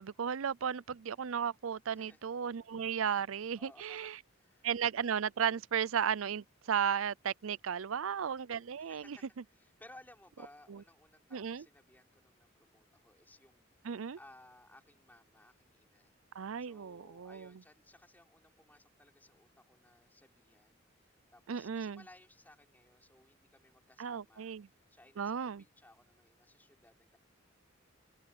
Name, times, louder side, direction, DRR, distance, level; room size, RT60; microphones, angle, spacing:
voice 1, 0.0-4.2 4.6-9.2 10.7-10.8 11.3-11.6 13.8-14.2 16.3-17.5 21.5-22.0 24.0-24.7 25.2-25.6, right 7 dB, 80° right, 0.5 m, -35 dB
voice 2, 1.9-2.3 3.6-4.1 4.4-4.8 7.9-8.3 8.8-9.2 9.5-13.7 14.2-16.1 16.6-27.2, left 1 dB, 10° left, 4.2 m, -61 dB
head